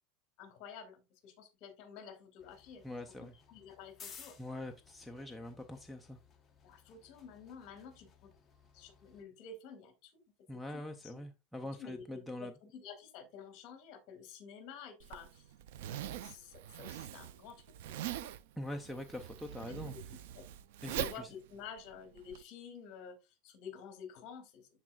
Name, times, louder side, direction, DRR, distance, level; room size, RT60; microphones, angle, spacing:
voice 1, 0.4-2.9 3.5-4.4 6.6-8.3 8.7-10.2 10.5-11.2 11.8-15.5 15.9-18.0 19.7-19.8 20.3-20.5 20.9-23.2 23.4-24.7, left 6 dB, 40° left, 7 dB, 2.1 m, -50 dB
sound 1, 2.4-9.2, left 6 dB, 15° left, 1.0 m, -58 dB
voice 2, 2.8-3.3 4.4-6.2 10.5-12.5 18.6-19.9 20.8-21.3, left 1 dB, ahead, 1 dB, 0.5 m, -43 dB
Zipper (clothing), 15.0-22.4, right 12 dB, 80° right, 0.5 m, -43 dB
12.0 x 4.2 x 2.3 m, 0.25 s
supercardioid pair, 165°, 0 cm